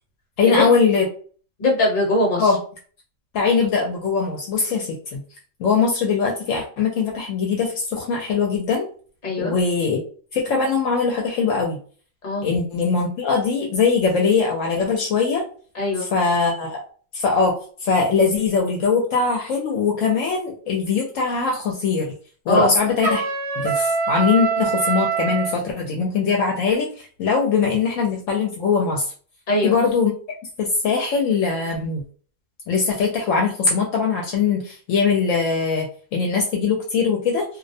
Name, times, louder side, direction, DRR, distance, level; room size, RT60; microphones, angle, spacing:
voice 1, 0.4-1.0 2.4-2.6 3.3-5.2 5.6-8.9 9.4-10.0 10.3-11.8 12.4-15.4 16.1-16.8 17.1-17.5 17.8-22.1 22.5-23.2 23.6-29.0 29.6-30.1 30.6-32.0 32.7-37.4, left 5 dB, 70° left, -1 dB, 0.9 m, -21 dB
voice 2, 1.6-2.6 9.2-9.5 12.2-12.6 15.7-16.1 22.5-22.7 29.5-29.7, left 2 dB, 40° left, 0 dB, 0.9 m, -21 dB
Trumpet, 23.0-25.6, right 5 dB, 50° right, 0.8 m, -23 dB
2.5 x 2.0 x 2.6 m, 0.42 s
omnidirectional pair, 1.4 m